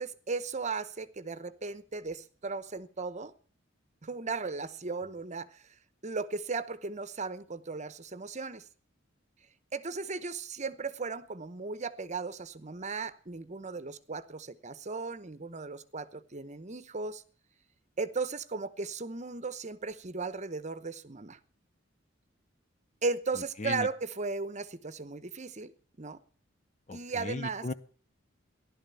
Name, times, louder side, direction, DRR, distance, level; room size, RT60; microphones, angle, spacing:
voice 1, 0.0-3.3 4.0-5.6 6.0-8.6 9.7-17.2 18.0-21.4 23.0-25.7 26.0-26.2 26.9-27.7, right 4 dB, 35° right, 0.9 m, -36 dB
voice 2, 26.9-27.7, left 2 dB, 35° left, 0.8 m, -36 dB
15.5 x 12.0 x 6.9 m
head